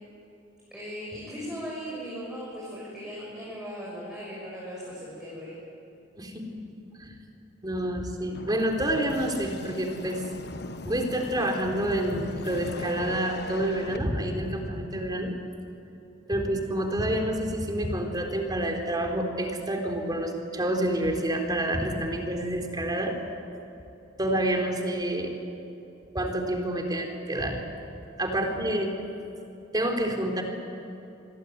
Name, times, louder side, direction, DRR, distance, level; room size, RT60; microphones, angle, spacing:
voice 1, 0.7-5.5 16.3-16.6 28.4-28.5, equal, 5° right, -7 dB, 6.8 m, -38 dB
voice 2, 7.6-10.2 10.8-15.3 16.3-23.2 24.2-25.3 26.1-27.6 28.2-28.9 29.7-30.4, right 1 dB, 20° right, 3 dB, 3.8 m, -28 dB
sound 1, 8.3-14.0, left 2 dB, 55° left, 1.3 m, -39 dB
27.5 x 22.0 x 9.4 m, 2.9 s
head